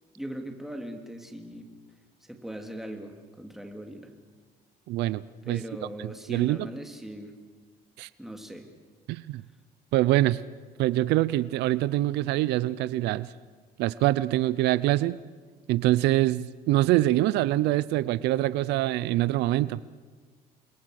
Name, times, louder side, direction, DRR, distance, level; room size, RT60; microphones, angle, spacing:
voice 1, 0.1-1.7 2.3-4.1 5.5-7.3 8.2-8.7, equal, ahead, 4 dB, 3.2 m, -39 dB
voice 2, 4.9-5.6 6.0-6.7 8.0-8.1 9.1-9.4 9.9-10.4 10.8-13.3 13.8-15.2 15.7-19.8, right 16 dB, 85° right, 17 dB, 0.7 m, -24 dB
29.0 x 22.5 x 6.6 m, 1.4 s
cardioid pair, 110°, 17 cm